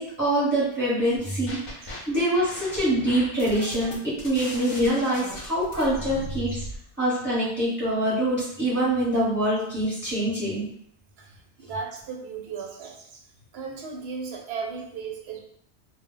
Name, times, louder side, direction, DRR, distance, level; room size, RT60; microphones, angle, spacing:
voice 1, 0.0-6.6 7.0-10.7, right 1 dB, 10° right, -10 dB, 0.8 m, -25 dB
sound 1, 1.2-2.0 2.3-6.8, equal, 40° left, 0.5 m, -37 dB
voice 2, 11.6-13.2 13.5-15.4, right 5 dB, 70° right, 1 dB, 0.8 m, -35 dB
2.1 x 2.1 x 3.8 m, 0.66 s
omnidirectional pair, 1.2 m